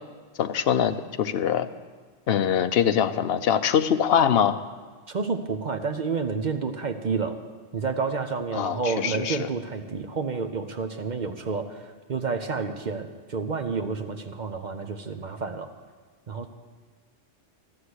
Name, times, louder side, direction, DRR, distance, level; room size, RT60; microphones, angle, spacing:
voice 1, 0.4-1.7 2.3-4.6 8.5-9.5, left 8 dB, 60° left, 10 dB, 0.8 m, -23 dB
voice 2, 5.1-7.4 7.7-15.7 16.3-16.5, right 4 dB, 45° right, 6 dB, 0.7 m, -30 dB
13.0 x 6.6 x 9.6 m, 1.4 s
omnidirectional pair, 1.2 m